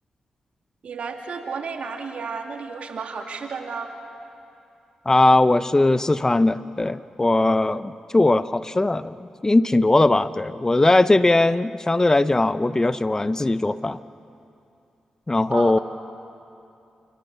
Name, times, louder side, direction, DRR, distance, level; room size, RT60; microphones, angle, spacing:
voice 1, 0.8-3.9 15.5-15.8, right 5 dB, 70° right, 4 dB, 2.3 m, -32 dB
voice 2, 5.1-14.0 15.3-15.8, left 2 dB, 25° left, 15 dB, 0.7 m, -19 dB
29.0 x 18.0 x 6.9 m, 2.7 s
supercardioid pair, 45°, 2 cm